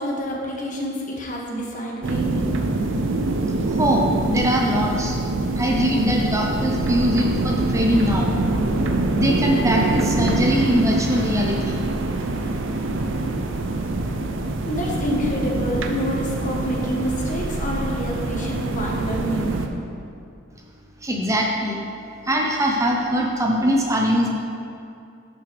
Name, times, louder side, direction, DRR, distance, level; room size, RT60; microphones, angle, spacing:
voice 1, 0.0-2.6 14.6-19.6, equal, 40° left, -2 dB, 1.4 m, -27 dB
sound 1, 2.0-19.7, right 2 dB, 70° right, 0.6 m, -24 dB
voice 2, 3.6-5.2 5.6-8.3 9.1-11.8 21.0-21.8 22.2-24.3, equal, 15° right, -1 dB, 0.8 m, -22 dB
11.5 x 5.8 x 3.4 m, 2.6 s
head